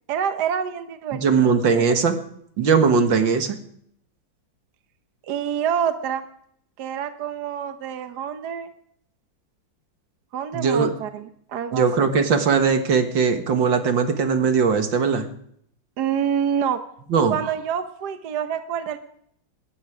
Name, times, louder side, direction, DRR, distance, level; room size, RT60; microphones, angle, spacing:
voice 1, 0.1-1.8 5.3-6.2 6.8-8.7 10.3-12.1 16.0-16.8 17.3-19.0, right 8 dB, 65° right, 8 dB, 1.4 m, -27 dB
voice 2, 1.1-2.2 2.6-3.6 10.5-10.9 11.7-15.3 17.1-17.4, right 5 dB, 80° right, 7 dB, 2.4 m, -19 dB
19.0 x 14.0 x 5.0 m, 0.69 s
omnidirectional pair, 2.0 m